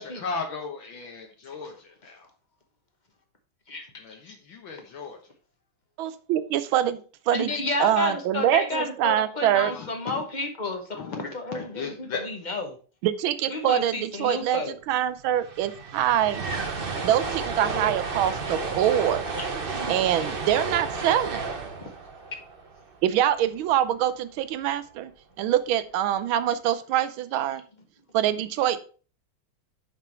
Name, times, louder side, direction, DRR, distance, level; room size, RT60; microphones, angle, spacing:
voice 1, 0.0-1.7 2.0-2.3 4.0-5.2 9.7-10.2 10.9-11.2 11.5-12.2, left 4 dB, 70° left, 2 dB, 1.8 m, -36 dB
voice 2, 6.0-7.0 7.3-7.5 7.8-9.7 13.0-16.4 17.0-19.2 19.9-21.4 23.0-25.1 25.4-27.6 28.1-28.8, right 11 dB, 75° right, 13 dB, 1.4 m, -24 dB
voice 3, 7.3-12.7 13.5-14.7 19.4-19.5 21.8-21.9, left 2 dB, 30° left, 4 dB, 0.8 m, -31 dB
sound 1, 14.9-15.0 15.2-23.4, right 4 dB, 45° right, 0.7 m, -32 dB
6.1 x 5.6 x 4.5 m, 0.38 s
omnidirectional pair, 2.3 m